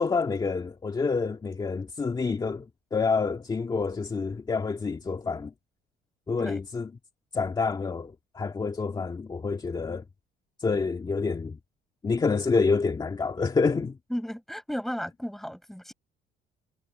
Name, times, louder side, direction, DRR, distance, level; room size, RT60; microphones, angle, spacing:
voice 1, 0.0-5.5 6.3-6.9 7.3-10.0 10.6-11.6 12.0-14.0, left 4 dB, 25° left, 1.9 m, -28 dB
voice 2, 14.1-15.9, equal, ahead, 7.4 m, -34 dB
cardioid pair, 110°, 17 cm